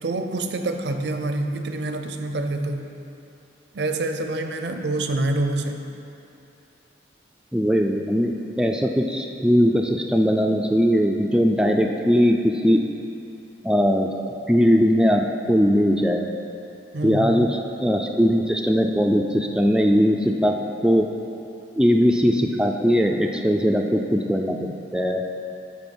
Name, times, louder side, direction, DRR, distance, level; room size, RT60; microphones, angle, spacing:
voice 1, 0.0-2.9 3.7-5.9 16.9-17.4, right 2 dB, 75° right, 6 dB, 0.6 m, -26 dB
voice 2, 7.5-12.8 13.6-14.1 14.5-16.3 17.0-21.1 21.8-25.2, equal, 5° right, 1 dB, 0.3 m, -20 dB
11.5 x 4.2 x 5.4 m, 2.8 s
head